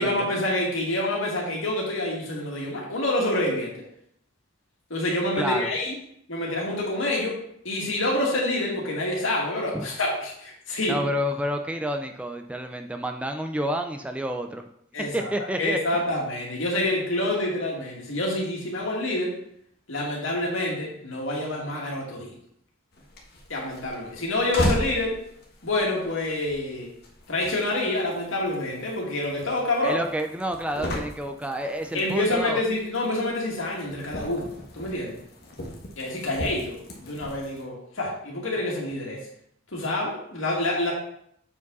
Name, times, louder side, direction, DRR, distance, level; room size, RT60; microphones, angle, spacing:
voice 1, 0.0-3.8 4.9-5.9 6.3-7.4 7.6-11.0 14.9-15.3 15.6-19.4 19.9-22.3 23.5-25.2 25.6-26.9 27.3-30.0 31.9-35.2 36.0-39.2 39.7-40.9, left 1 dB, 80° left, -2 dB, 2.2 m, -27 dB
voice 2, 5.4-5.7 9.7-9.9 10.9-14.6 15.1-16.0 29.8-32.6, equal, 5° right, 5 dB, 0.3 m, -29 dB
sound 1, 22.9-37.6, left 1 dB, 55° left, 1.2 m, -37 dB
7.3 x 4.8 x 4.0 m, 0.71 s
head